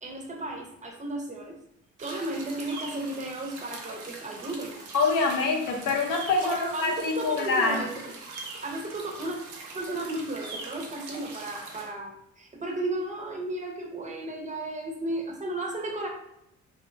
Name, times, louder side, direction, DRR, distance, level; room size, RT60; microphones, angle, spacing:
voice 1, 0.0-1.6 2.0-4.8 6.4-8.1 8.6-9.4 9.7-16.1, right 2 dB, 25° right, 2 dB, 0.5 m, -34 dB
sound 1, 2.0-11.9, right 3 dB, 85° right, 0.6 m, -42 dB
voice 2, 4.9-7.8, left 3 dB, 90° left, 1 dB, 0.6 m, -25 dB
2.7 x 2.1 x 2.5 m, 0.82 s
cardioid pair, 90°, 30 cm